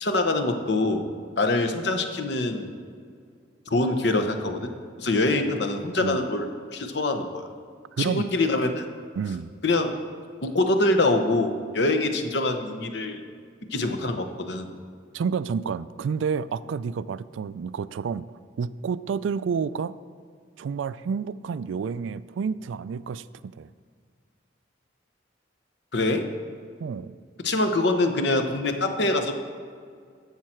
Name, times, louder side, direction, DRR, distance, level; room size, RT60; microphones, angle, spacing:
voice 1, 0.0-1.0 1.4-2.7 3.7-4.7 5.0-7.5 8.0-8.8 9.6-9.9 10.4-13.2 13.7-14.7 25.9-26.3 27.4-29.3, left 2 dB, 65° left, 6 dB, 0.9 m, -24 dB
voice 2, 8.0-8.3 9.2-9.5 15.1-18.3 18.6-20.0 20.6-23.7 26.8-27.1, right 6 dB, 85° right, 17 dB, 0.3 m, -29 dB
12.0 x 7.4 x 4.4 m, 2.1 s
head